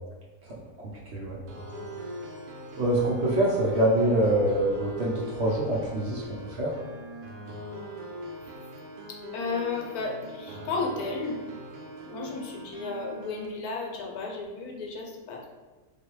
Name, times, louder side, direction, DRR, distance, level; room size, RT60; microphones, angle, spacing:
sound 1, 1.5-13.5, equal, 75° right, 1.1 m, -41 dB
voice 1, 2.8-6.7, right 1 dB, 55° right, -6 dB, 0.9 m, -25 dB
voice 2, 9.3-11.4 12.0-15.5, left 4 dB, 70° left, -1 dB, 1.2 m, -33 dB
3.3 x 2.7 x 4.5 m, 1.3 s
omnidirectional pair, 1.7 m